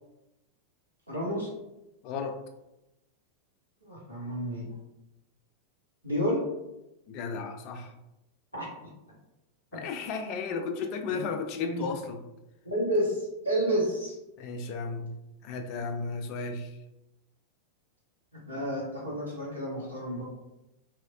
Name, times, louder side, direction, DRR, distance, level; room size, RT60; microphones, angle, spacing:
voice 1, 1.1-1.5 3.8-4.7 6.0-6.4 8.5-8.7 11.1-11.3 11.6-11.8 12.6-14.1 18.3-20.2, equal, 85° right, -6 dB, 1.1 m, -30 dB
voice 2, 2.0-2.4 7.1-7.9 9.7-12.2 14.4-15.1 15.4-16.8, left 4 dB, 40° left, 5 dB, 0.4 m, -34 dB
3.0 x 2.7 x 2.4 m, 0.92 s
figure-of-eight pair, 90°, 0 cm